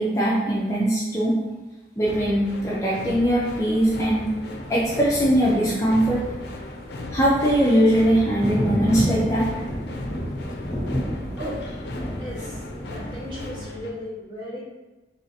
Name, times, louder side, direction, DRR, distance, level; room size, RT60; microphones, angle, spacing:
voice 1, 0.0-1.3 2.0-4.2 4.7-6.2 7.1-9.5, equal, 15° left, -7 dB, 0.6 m, -21 dB
sound 1, 2.1-13.9, left 2 dB, 65° left, 0.5 m, -37 dB
Thunder, 3.7-13.4, equal, 35° left, 0.9 m, -31 dB
voice 2, 11.4-14.6, equal, 25° right, -9 dB, 1.5 m, -36 dB
4.5 x 3.2 x 2.8 m, 1.2 s
head